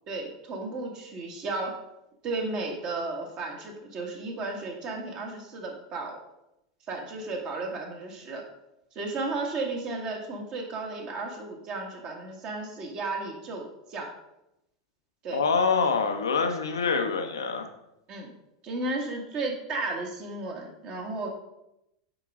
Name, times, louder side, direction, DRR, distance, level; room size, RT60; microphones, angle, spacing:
voice 1, 0.1-1.8 2.2-6.2 6.9-8.4 8.9-14.1 15.2-15.4 18.1-18.3 18.6-21.3, right 3 dB, 45° right, 1 dB, 1.6 m, -34 dB
voice 2, 15.3-17.7, left 5 dB, 80° left, 5 dB, 0.7 m, -25 dB
8.8 x 3.9 x 3.5 m, 0.86 s
hypercardioid pair, 90°, 2 cm